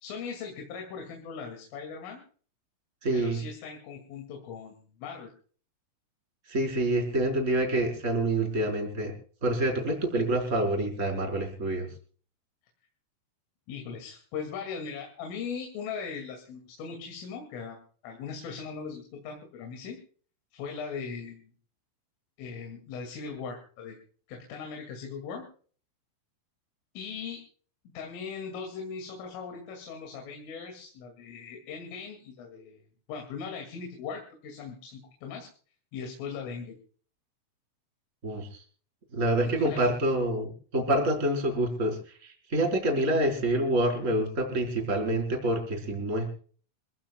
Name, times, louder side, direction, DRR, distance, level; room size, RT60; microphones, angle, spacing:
voice 1, 0.0-2.2 3.1-5.3 13.7-20.0 20.5-21.5 22.4-24.0 24.3-25.4 26.9-27.4 27.9-32.8 33.1-35.5 35.9-36.8 39.4-39.9, left 5 dB, 85° left, 2 dB, 5.0 m, -39 dB
voice 2, 3.0-3.4 6.5-9.1 9.4-11.9 38.2-38.6 39.1-46.3, right 1 dB, 15° right, 1 dB, 4.3 m, -27 dB
26.5 x 16.0 x 2.3 m, 0.44 s
omnidirectional pair, 5.6 m